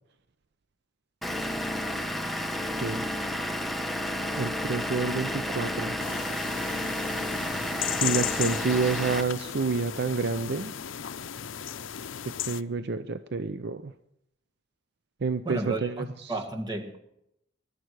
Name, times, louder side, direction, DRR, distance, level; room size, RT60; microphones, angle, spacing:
Vehicle / Engine, 1.2-9.2, left 1 dB, ahead, 1.0 m, -31 dB
voice 1, 4.4-5.9 8.0-10.7 12.5-13.9 15.2-16.3, right 4 dB, 55° right, 11 dB, 0.5 m, -29 dB
sound 1, 6.0-12.6, left 10 dB, 70° left, 0.6 m, -35 dB
voice 2, 15.5-17.0, right 2 dB, 20° right, 4 dB, 1.8 m, -33 dB
21.5 x 12.5 x 4.8 m, 0.81 s
head